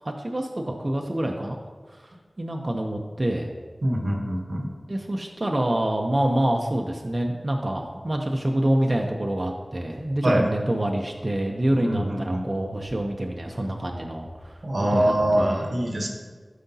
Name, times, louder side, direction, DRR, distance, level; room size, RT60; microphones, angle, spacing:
voice 1, 0.0-1.6 2.0-3.5 4.9-14.6 14.9-15.6, right 1 dB, 45° right, 1 dB, 0.7 m, -26 dB
voice 2, 3.8-4.7 10.2-10.5 11.7-12.4 14.6-16.1, right 1 dB, 80° right, 1 dB, 1.0 m, -24 dB
11.5 x 5.0 x 2.8 m, 1.5 s
wide cardioid pair, 40°, 0 cm